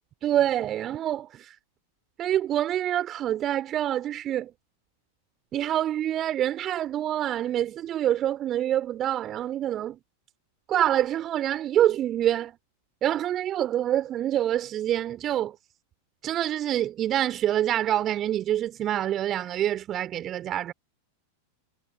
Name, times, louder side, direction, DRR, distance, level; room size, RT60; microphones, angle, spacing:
voice 1, 0.2-1.5 2.2-4.5 5.5-10.0 10.7-12.6 13.0-15.5 16.2-20.7, right 11 dB, 30° right, 4.1 m, -26 dB
figure-of-eight pair, 90°, 0 cm